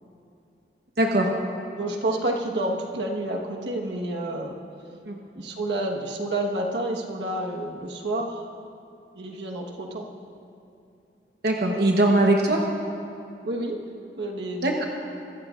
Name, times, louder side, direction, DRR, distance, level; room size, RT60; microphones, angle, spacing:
voice 1, 1.0-1.3 5.1-5.2 11.4-12.7 14.6-14.8, right 1 dB, 65° right, 0 dB, 1.1 m, -21 dB
voice 2, 1.8-4.5 5.3-8.5 9.1-10.1 13.4-13.8 14.2-14.8, right 1 dB, 90° right, 0 dB, 1.4 m, -29 dB
23.0 x 14.5 x 2.5 m, 2.8 s
head